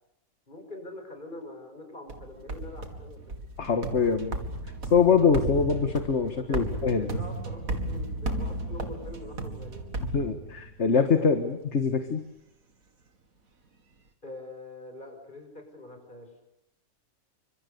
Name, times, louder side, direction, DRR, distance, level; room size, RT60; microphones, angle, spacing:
voice 1, 0.5-3.4 5.3-5.4 6.5-9.9 14.2-16.3, left 2 dB, 35° left, 5 dB, 6.0 m, -44 dB
sound 1, 2.1-10.9, right 2 dB, 80° right, 2.8 m, -34 dB
voice 2, 3.6-4.4 4.9-7.2 10.1-12.2, left 5 dB, 55° left, 8 dB, 1.9 m, -24 dB
29.5 x 25.5 x 6.9 m, 0.82 s
omnidirectional pair, 1.5 m